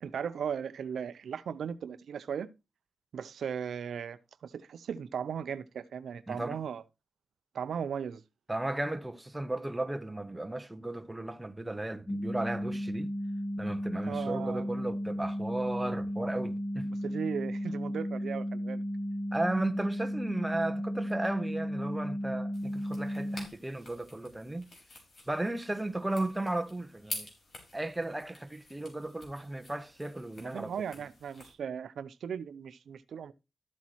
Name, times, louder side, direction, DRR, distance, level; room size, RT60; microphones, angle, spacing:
voice 1, 0.0-2.5 3.1-6.8 7.5-8.2 14.0-14.7 16.9-18.8 30.4-33.3, right 7 dB, 90° right, 0.5 m, -37 dB
voice 2, 6.3-6.6 8.5-13.1 13.6-16.9 19.3-24.7 25.3-27.3 27.7-30.7, right 2 dB, 10° right, 0.9 m, -35 dB
sound 1, 12.1-23.5, equal, 15° left, 0.9 m, -34 dB
sound 2, 22.5-31.5, left 2 dB, 55° left, 4.4 m, -48 dB
13.0 x 8.2 x 3.0 m
wide cardioid pair, 100°, 0 cm